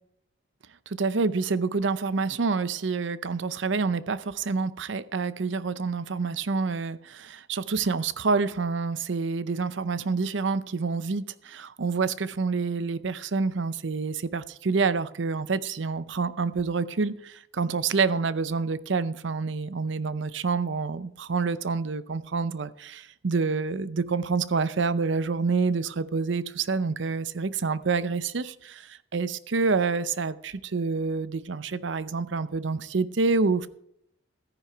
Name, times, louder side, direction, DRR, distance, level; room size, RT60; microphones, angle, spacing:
voice 1, 1.0-33.7, right 4 dB, 75° right, 15 dB, 0.6 m, -27 dB
14.0 x 9.9 x 4.6 m, 0.75 s
head